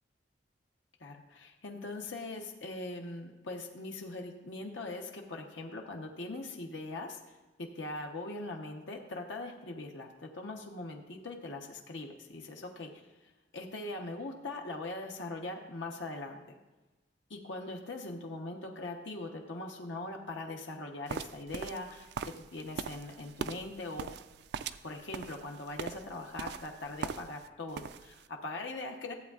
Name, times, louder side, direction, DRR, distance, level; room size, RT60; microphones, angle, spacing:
voice 1, 1.0-16.5 17.3-24.1 24.8-29.1, left 2 dB, 85° left, 1 dB, 0.9 m, -41 dB
sound 1, 21.1-27.5 27.7-28.2, right 6 dB, 60° right, 0.3 m, -41 dB
14.0 x 8.1 x 2.4 m, 1.2 s
head